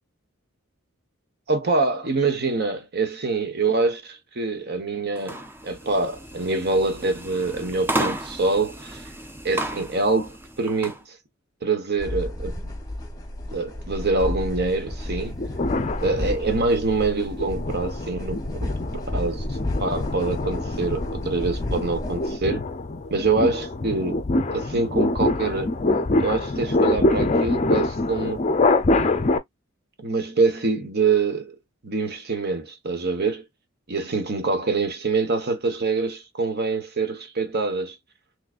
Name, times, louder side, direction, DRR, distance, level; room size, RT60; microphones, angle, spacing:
voice 1, 1.5-9.1 9.4-11.2 11.6-12.7 13.5-15.4 16.0-18.8 19.1-22.6 23.1-24.2 24.5-25.7 26.2-28.4 30.0-31.5 31.8-33.4 33.9-38.0, right 3 dB, 50° right, 1.1 m, -25 dB
sound 1, 5.2-11.0, right 1 dB, 10° right, 0.6 m, -33 dB
sound 2, 12.0-22.3, left 1 dB, 20° left, 1.0 m, -32 dB
sound 3, 15.3-16.8 17.3-29.4, left 2 dB, 35° left, 0.5 m, -25 dB
3.8 x 3.2 x 2.4 m
head